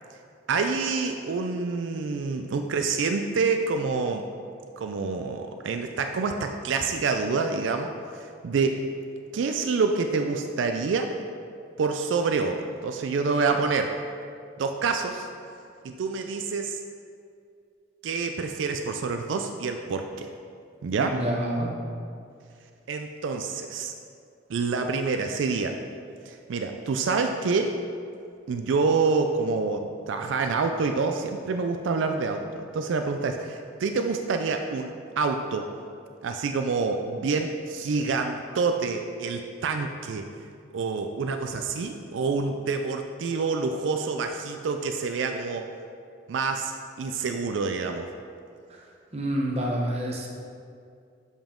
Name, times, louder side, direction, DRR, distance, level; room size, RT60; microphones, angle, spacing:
voice 1, 0.5-4.2 4.8-8.8 9.3-11.1 11.8-13.9 14.6-15.3 15.8-16.8 18.0-20.3 20.8-21.2 22.9-23.9 24.5-25.8 26.3-27.8 28.5-35.7 36.2-40.3 40.7-45.7 46.3-48.1, right 4 dB, 85° right, 5 dB, 0.4 m, -27 dB
voice 2, 21.0-21.7 48.7-48.8 49.1-50.3, right 1 dB, 35° right, -1 dB, 0.9 m, -28 dB
7.0 x 5.4 x 3.7 m, 2.3 s
head